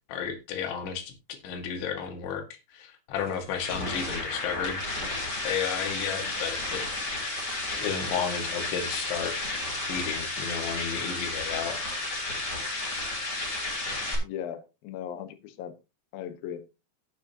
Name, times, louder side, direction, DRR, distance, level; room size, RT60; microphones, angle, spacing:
voice 1, 0.0-4.8 5.1-6.9 7.5-9.4 9.9-11.8, left 7 dB, 90° left, 4.1 m, -33 dB
sound 1, 3.2-14.2, left 2 dB, 25° left, 3.7 m, -32 dB
voice 2, 14.2-15.7 16.1-16.6, left 9 dB, 70° left, 2.5 m, -37 dB
16.5 x 7.4 x 2.8 m
omnidirectional pair, 5.1 m